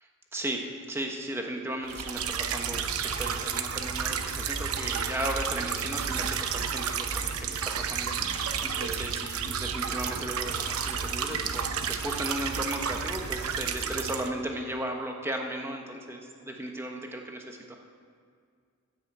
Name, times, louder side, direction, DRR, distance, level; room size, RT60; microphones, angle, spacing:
voice 1, 0.0-17.8, right 1 dB, 10° right, 1 dB, 1.2 m, -36 dB
sound 1, 1.9-14.3, right 6 dB, 80° right, 0.9 m, -31 dB
14.5 x 6.5 x 8.1 m, 2.2 s
head